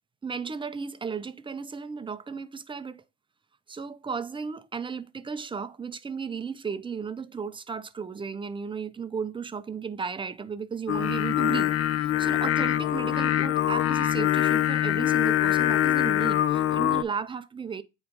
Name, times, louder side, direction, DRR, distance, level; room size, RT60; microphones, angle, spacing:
voice 1, 0.2-3.0 3.7-11.7 12.0-17.8, right 6 dB, 15° right, 0.5 m, -34 dB
Singing, 10.9-17.0, left 12 dB, 45° left, 0.4 m, -24 dB
8.5 x 3.1 x 3.6 m
supercardioid pair, 85°, 36 cm